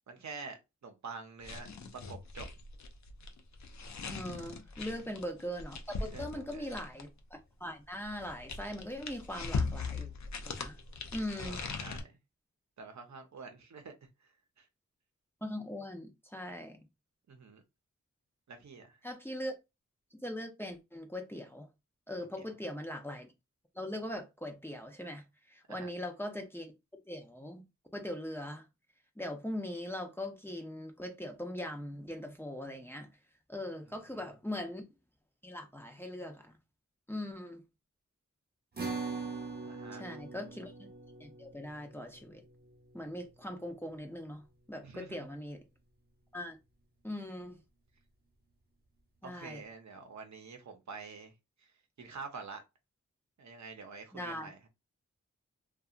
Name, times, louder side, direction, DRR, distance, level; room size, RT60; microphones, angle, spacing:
voice 1, 0.1-1.7 2.1-2.5 6.1-6.7 11.4-12.2 12.8-13.9 14.6-14.7 17.3-17.6 18.5-19.0 22.4-22.5 25.7-25.9 34.1-34.3 39.6-40.1 44.8-45.3 49.2-51.3 52.0-52.6 53.4-54.6, right 4 dB, 70° right, 0.7 m, -47 dB
sound 1, 1.4-7.2 8.0-12.0, left 4 dB, 65° left, 0.5 m, -40 dB
voice 2, 4.0-10.1 10.4-10.8 11.1-11.6 15.4-16.8 19.0-19.5 20.1-21.7 22.1-23.3 23.7-26.7 27.1-27.6 27.9-28.7 29.2-33.1 33.5-34.8 35.4-36.5 37.1-37.6 39.9-40.9 41.2-42.4 42.9-45.6 46.3-46.6 47.0-47.6 49.2-49.6 54.1-54.5, left 1 dB, 10° left, 0.5 m, -41 dB
sound 2, 38.8-45.4, right 4 dB, 35° right, 0.8 m, -44 dB
2.7 x 2.3 x 2.4 m
wide cardioid pair, 65°, 29 cm